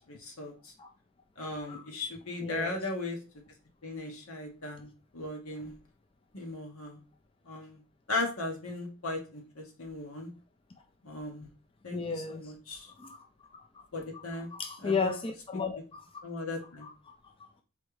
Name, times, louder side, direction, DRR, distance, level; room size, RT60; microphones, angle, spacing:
voice 1, 0.1-0.7 1.4-3.2 3.8-4.9 5.1-5.7 6.3-7.0 7.5-7.8 8.1-10.3 11.0-11.5 11.8-12.9 13.9-14.5 14.8-15.1 16.2-16.9, left 2 dB, 85° left, 1.3 m, -37 dB
voice 2, 2.4-2.8 11.9-12.5 13.0-13.2 13.5-13.8 14.5-16.0 16.8-16.9, left 4 dB, 25° left, 0.4 m, -34 dB
4.3 x 3.6 x 3.1 m
head